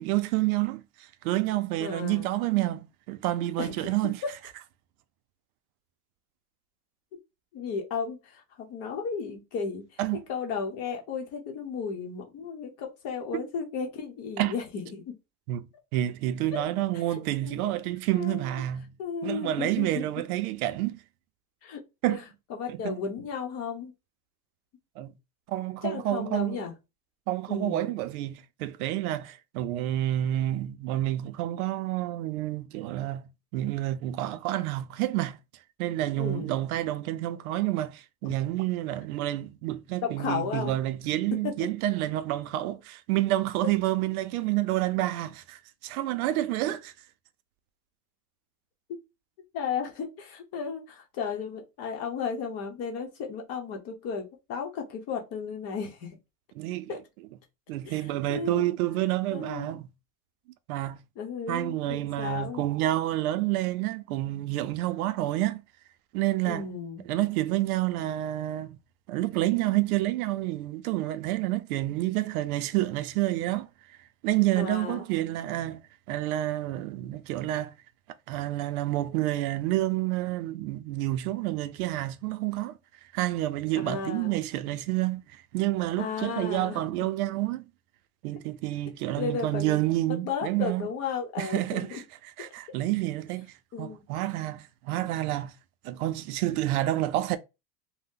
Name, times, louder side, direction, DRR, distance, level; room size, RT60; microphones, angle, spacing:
voice 1, 0.0-4.2 10.0-10.2 13.3-13.4 14.4-14.5 15.5-19.0 19.2-21.0 22.0-22.2 22.7-23.0 25.0-25.1 25.5-26.6 27.3-33.2 33.5-35.4 35.8-46.9 56.6-57.0 57.7-59.8 60.7-61.0 61.5-65.6 66.1-66.6 67.1-68.8 69.1-73.7 74.2-75.8 76.1-77.7 78.3-82.8 83.1-87.6 88.2-90.9 91.4-92.0 92.4-95.5 95.8-97.4, right 15 dB, 80° right, 0.5 m, -29 dB
voice 2, 1.8-2.3 3.6-3.9 4.2-4.3 7.5-9.8 10.3-15.0 16.5-16.6 17.4-17.6 18.1-18.5 19.0-20.1 21.6-21.8 22.1-22.2 22.5-23.9 25.8-26.7 27.5-27.9 36.2-36.7 40.0-40.7 49.5-56.2 56.9-57.0 57.9-58.7 59.3-59.8 61.2-62.7 66.5-67.0 74.6-75.0 83.8-84.4 86.0-86.8 89.2-89.8 90.1-92.0 92.4-92.8 93.7-94.0, left 6 dB, 35° left, 0.7 m, -34 dB
2.7 x 2.1 x 3.5 m
supercardioid pair, 155°, 42 cm